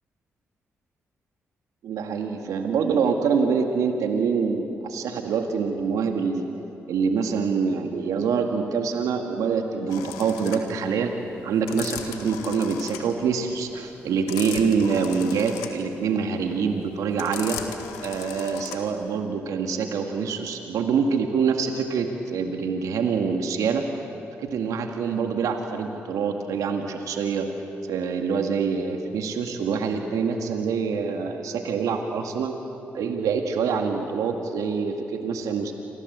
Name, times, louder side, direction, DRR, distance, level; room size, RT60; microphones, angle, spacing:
voice 1, 1.8-6.4 6.9-11.1 11.4-17.6 18.0-23.8 24.4-27.5 27.9-32.5 32.9-35.7, right 5 dB, 75° right, 4 dB, 2.0 m, -25 dB
sound 1, 9.9-19.1, left 10 dB, 90° left, 1.7 m, -37 dB
28.5 x 25.0 x 8.1 m, 2.9 s
hypercardioid pair, 40°, 6 cm